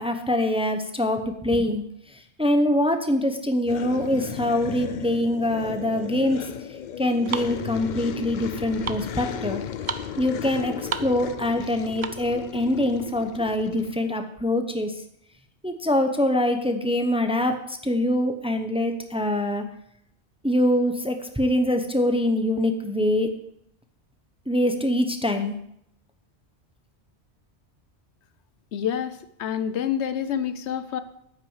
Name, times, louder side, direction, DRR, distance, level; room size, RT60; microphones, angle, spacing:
voice 1, 0.0-6.5 7.0-9.6 10.2-14.9 15.6-19.6 20.4-23.3 24.5-25.5, left 1 dB, 5° right, 7 dB, 0.7 m, -24 dB
sound 1, 3.6-14.0, left 9 dB, 55° left, 0.5 m, -35 dB
sound 2, 6.1-12.4, right 6 dB, 45° right, 0.6 m, -36 dB
voice 2, 28.7-31.0, left 9 dB, 85° left, 12 dB, 1.0 m, -28 dB
9.4 x 6.2 x 7.3 m, 0.76 s
omnidirectional pair, 1.1 m